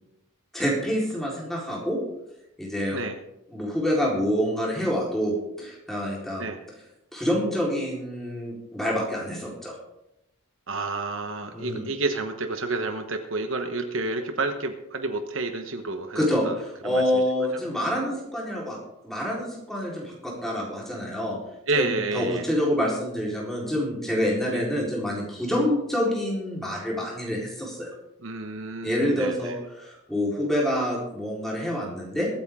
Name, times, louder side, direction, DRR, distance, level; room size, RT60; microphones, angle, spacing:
voice 1, 0.5-2.0 2.6-3.0 3.5-6.4 7.1-9.7 11.5-11.9 16.2-18.8 19.0-21.4 21.7-27.9 28.8-32.3, equal, ahead, -4 dB, 4.0 m, -27 dB
voice 2, 10.7-16.6 16.8-17.5 21.7-22.4 24.5-24.6 28.2-29.6, right 3 dB, 65° right, 6 dB, 1.1 m, -30 dB
23.0 x 8.9 x 3.7 m, 0.86 s
head